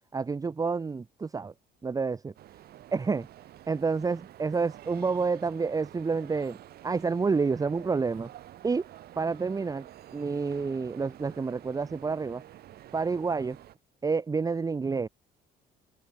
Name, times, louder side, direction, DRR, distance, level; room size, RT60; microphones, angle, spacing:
voice 1, 0.1-1.5 1.8-2.3 2.9-3.3 3.7-6.6 6.8-8.3 8.6-8.8 9.2-12.4 12.9-13.6 14.0-15.1, right 4 dB, 20° right, 0.9 m, -29 dB
sound 1, 2.4-13.8, right 13 dB, 65° right, 6.6 m, -50 dB
cardioid pair, 110°, 17 cm